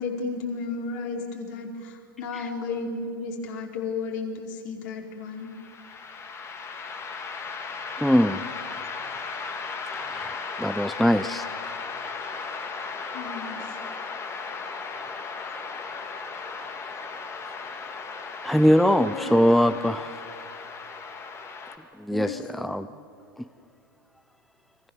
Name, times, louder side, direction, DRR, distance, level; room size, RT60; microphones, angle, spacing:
voice 1, 0.0-5.5 13.1-13.8 19.1-19.3 22.1-22.4, left 4 dB, 55° left, 1 dB, 4.8 m, -33 dB
sound 1, 5.3-21.8, left 4 dB, 20° left, 2.2 m, -36 dB
voice 2, 7.9-8.5 9.9-11.4 18.4-20.2 22.0-22.9, equal, ahead, 12 dB, 0.5 m, -22 dB
30.0 x 23.5 x 7.4 m, 2.4 s
hypercardioid pair, 110°, 12 cm